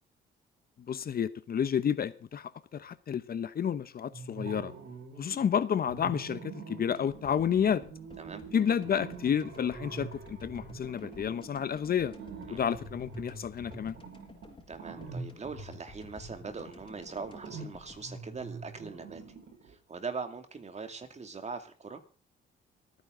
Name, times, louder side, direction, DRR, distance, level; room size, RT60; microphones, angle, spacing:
voice 1, 0.9-4.7 5.2-7.8 8.5-12.1 12.5-14.0, left 8 dB, 50° left, 14 dB, 1.0 m, -30 dB
sound 1, 4.1-5.5 5.8-19.7, right 4 dB, 65° right, 6.1 m, -45 dB
sound 2, 6.9-19.2 19.5-19.6, left 3 dB, 25° left, 4.9 m, -53 dB
voice 2, 14.7-19.2 19.7-22.0, right 4 dB, 35° right, 7 dB, 2.5 m, -41 dB
25.5 x 9.6 x 3.9 m, 0.37 s
cardioid pair, 90°, 20 cm